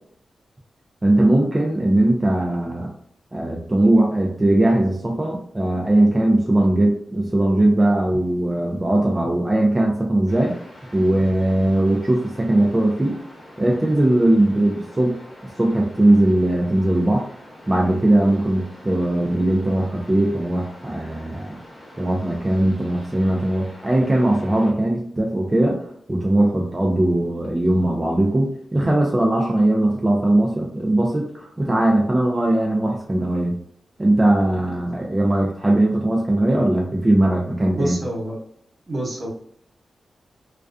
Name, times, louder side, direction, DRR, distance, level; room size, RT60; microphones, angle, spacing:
voice 1, 1.0-2.9 3.3-10.6 10.9-13.2 13.6-15.2 15.6-17.3 17.7-21.6 22.0-33.5 34.0-38.0, right 1 dB, 25° right, -1 dB, 0.5 m, -19 dB
sound 1, 10.3-24.7, equal, 50° left, 1.0 m, -45 dB
voice 2, 37.7-38.4 38.9-39.3, right 1 dB, 50° right, -2 dB, 1.0 m, -27 dB
2.3 x 2.2 x 2.5 m, 0.65 s
supercardioid pair, 45°, 0 cm